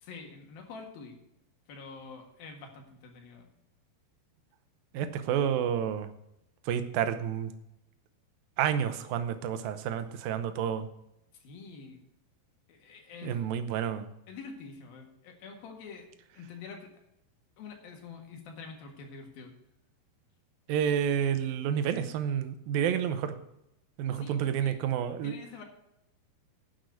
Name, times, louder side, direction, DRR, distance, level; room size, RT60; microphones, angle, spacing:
voice 1, 0.0-1.2 1.7-3.5 11.4-12.0 12.7-13.5 14.3-16.1 16.3-16.9 17.6-19.5 24.1-24.8 25.2-25.6, left 5 dB, 65° left, 2 dB, 3.3 m, -46 dB
voice 2, 4.9-6.1 6.7-7.5 8.6-10.9 13.2-14.1 20.7-23.4 24.0-25.3, right 9 dB, 75° right, 10 dB, 2.4 m, -29 dB
10.5 x 6.4 x 8.2 m, 0.81 s
omnidirectional pair, 4.8 m